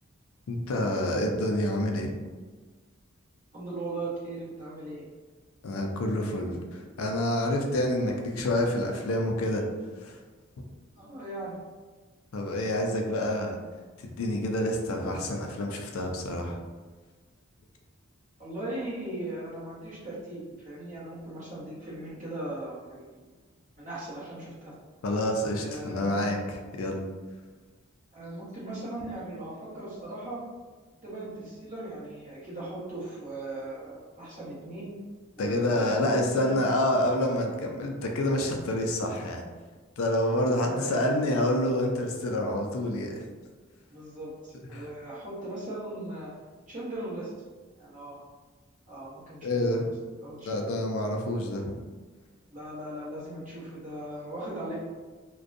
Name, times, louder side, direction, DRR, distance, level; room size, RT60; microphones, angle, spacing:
voice 1, 0.5-2.1 5.6-9.6 10.0-10.2 12.3-13.6 14.0-16.6 25.0-27.0 35.4-39.4 40.0-43.2 44.7-44.9 49.4-49.9 50.5-51.6, left 1 dB, 80° left, 2 dB, 0.4 m, -28 dB
voice 2, 3.5-5.1 8.0-8.1 10.9-11.6 18.4-23.4 23.8-24.7 25.6-26.2 28.1-30.4 31.0-34.9 35.3-36.6 40.5-41.5 43.9-46.3 46.7-47.3 47.8-48.2 48.9-49.8 50.2-50.6 52.5-54.8, right 1 dB, 35° right, -9 dB, 1.0 m, -38 dB
2.6 x 2.2 x 2.5 m, 1.4 s
head